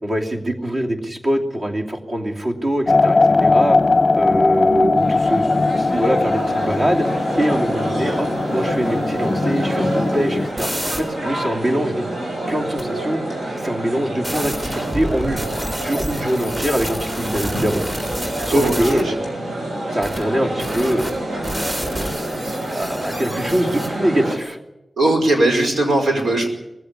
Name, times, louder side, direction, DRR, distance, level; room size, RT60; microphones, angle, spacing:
voice 1, 0.0-3.8 4.1-7.1 7.4-12.1 12.5-13.2 13.6-17.8 18.4-19.1 19.9-21.1 21.5-24.6, equal, 45° right, 1 dB, 2.8 m, -23 dB
sound 1, 2.9-10.5, left 3 dB, 25° left, 0.8 m, -19 dB
sound 2, 4.9-24.4, right 1 dB, 65° right, 6.4 m, -27 dB
sound 3, 9.3-11.0 12.8-12.9 14.2-19.0 20.0-20.2 20.6-23.9, equal, 25° right, 4.0 m, -30 dB
voice 2, 18.5-19.1 25.0-26.5, right 2 dB, 85° right, 3 dB, 5.1 m, -19 dB
20.0 x 15.5 x 9.8 m, 0.92 s
wide cardioid pair, 145°, 0 cm